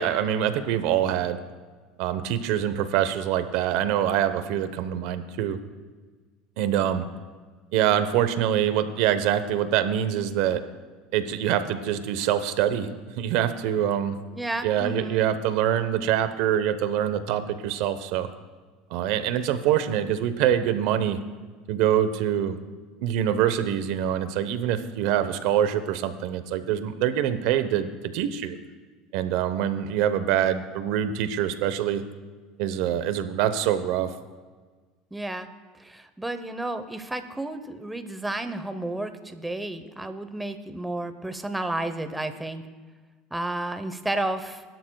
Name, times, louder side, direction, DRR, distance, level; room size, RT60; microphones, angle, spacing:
voice 1, 0.0-1.4 2.0-5.6 6.6-7.1 7.7-10.6 11.1-14.2 14.6-18.3 18.9-21.2 21.7-22.6 23.0-28.6 29.1-32.0 32.6-34.1, right 10 dB, 70° right, 11 dB, 0.9 m, -25 dB
voice 2, 14.3-15.3 35.1-35.5 35.8-42.6 43.3-44.6, right 2 dB, 5° right, 9 dB, 0.9 m, -32 dB
21.5 x 12.0 x 2.3 m, 1.4 s
supercardioid pair, 120°, 0 cm